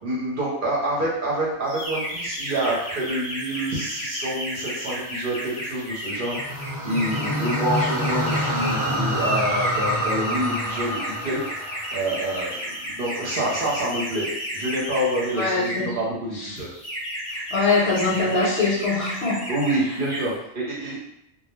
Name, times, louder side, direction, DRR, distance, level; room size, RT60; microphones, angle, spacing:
voice 1, 0.0-12.6 12.8-14.3 14.5-16.7 19.5-21.0, right 1 dB, 55° right, -5 dB, 0.8 m, -27 dB
sound 1, 1.7-16.0 16.6-19.8 20.0-20.3, equal, 40° left, 0.8 m, -33 dB
sound 2, 6.2-12.5, equal, 35° right, 0.3 m, -27 dB
voice 2, 15.3-15.9 16.3-16.6 17.3-19.5 19.8-20.0, left 3 dB, 65° left, -5 dB, 1.0 m, -24 dB
2.3 x 2.0 x 3.0 m, 0.78 s
omnidirectional pair, 1.2 m